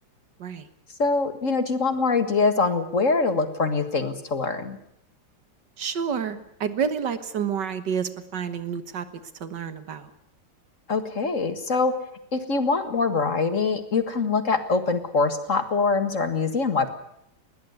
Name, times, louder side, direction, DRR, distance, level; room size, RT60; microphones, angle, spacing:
voice 1, 1.0-4.8 10.9-11.9 12.3-16.9, left 4 dB, 45° left, 9 dB, 2.0 m, -24 dB
voice 2, 5.8-9.1 9.4-10.1, right 7 dB, 70° right, 12 dB, 2.0 m, -29 dB
20.5 x 18.0 x 9.5 m, 0.73 s
omnidirectional pair, 2.0 m